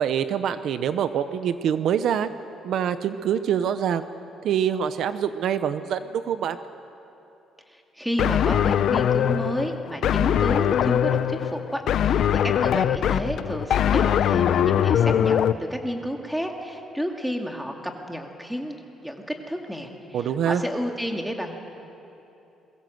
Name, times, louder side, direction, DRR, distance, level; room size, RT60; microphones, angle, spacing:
voice 1, 0.0-2.3 2.6-4.0 4.4-6.6 20.1-20.6, right 9 dB, 55° right, 11 dB, 0.8 m, -25 dB
voice 2, 7.9-18.8 19.0-21.5, equal, ahead, 2 dB, 2.1 m, -31 dB
sound 1, 8.2-15.5, left 9 dB, 55° left, 0.7 m, -22 dB
30.0 x 22.5 x 7.9 m, 2.9 s
cardioid pair, 165°, 0 cm